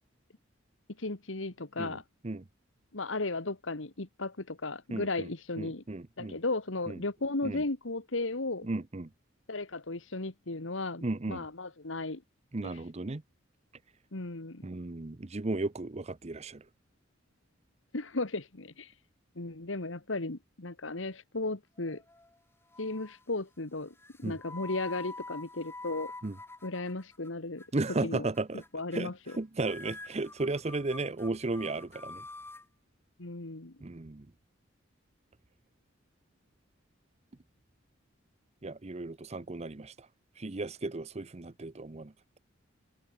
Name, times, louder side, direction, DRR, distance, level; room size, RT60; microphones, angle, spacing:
voice 1, 1.0-2.0 2.9-5.8 6.2-8.7 9.5-12.2 12.6-12.8 14.1-14.7 17.9-18.9 19.3-22.0 22.8-26.1 26.6-27.6 28.0-28.3 28.7-29.4 33.2-33.7, left 2 dB, 70° left, 1.8 m, -35 dB
voice 2, 4.9-5.3 5.6-6.4 6.9-7.0 7.4-7.6 8.6-9.1 11.0-11.4 12.5-13.2 14.6-16.6 24.2-24.3 26.2-26.3 27.7-28.6 28.9-29.1 29.4-32.2 33.8-34.3 38.6-39.9 40.4-42.1, right 2 dB, 35° right, 0.7 m, -34 dB
sound 1, 21.8-22.4 22.7-23.2 24.0-27.3 27.6-27.9 28.3-28.7 28.9-29.4 29.6-32.6, left 2 dB, 10° left, 2.1 m, -46 dB
head